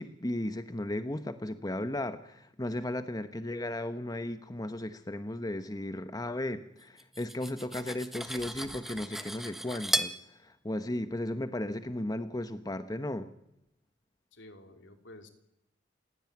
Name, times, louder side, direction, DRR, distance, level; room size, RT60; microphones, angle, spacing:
voice 1, 0.0-13.3, left 1 dB, 20° left, 10 dB, 1.0 m, -35 dB
Cutlery silverware, 7.0-10.2, equal, ahead, 1.3 m, -35 dB
voice 2, 14.3-15.3, left 1 dB, 70° left, 7 dB, 3.0 m, -51 dB
29.0 x 16.5 x 9.4 m, 0.82 s
head